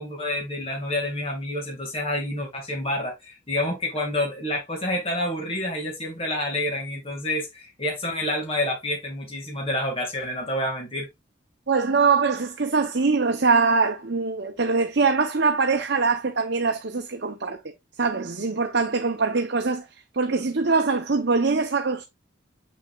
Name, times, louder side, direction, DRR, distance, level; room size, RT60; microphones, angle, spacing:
voice 1, 0.0-11.1, left 1 dB, 30° left, 2.1 m, -28 dB
voice 2, 11.7-17.6 18.0-19.9 20.1-22.0, right 4 dB, 60° right, 0.8 m, -23 dB
7.1 x 6.2 x 2.4 m
head